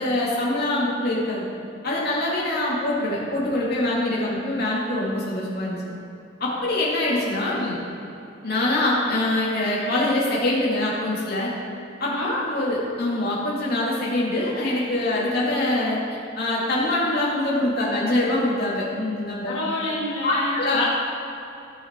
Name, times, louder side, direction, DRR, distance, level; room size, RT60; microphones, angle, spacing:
voice 1, 0.0-1.4 1.8-5.8 6.4-7.8 8.4-11.5 12.0-12.1 12.4-16.0 16.4-19.6 20.2-20.8, left 1 dB, 50° left, -6 dB, 2.4 m, -24 dB
voice 2, 12.1-12.4 19.5-20.8, left 1 dB, 70° left, -7 dB, 2.0 m, -28 dB
16.5 x 5.9 x 3.8 m, 2.7 s
head